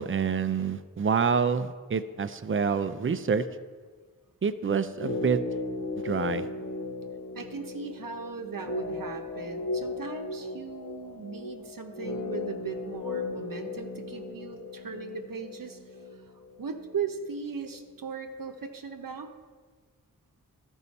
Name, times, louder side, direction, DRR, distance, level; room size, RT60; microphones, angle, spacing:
voice 1, 0.0-3.4 4.4-5.4 6.0-6.5, right 6 dB, 35° right, 11 dB, 0.5 m, -27 dB
sound 1, 4.9-17.1 17.3-17.4, left 3 dB, 50° left, 1.0 m, -36 dB
voice 2, 7.3-15.8 16.6-19.3, right 5 dB, 70° right, 4 dB, 0.9 m, -38 dB
12.5 x 5.4 x 4.1 m, 1.5 s
cardioid pair, 40°, 35 cm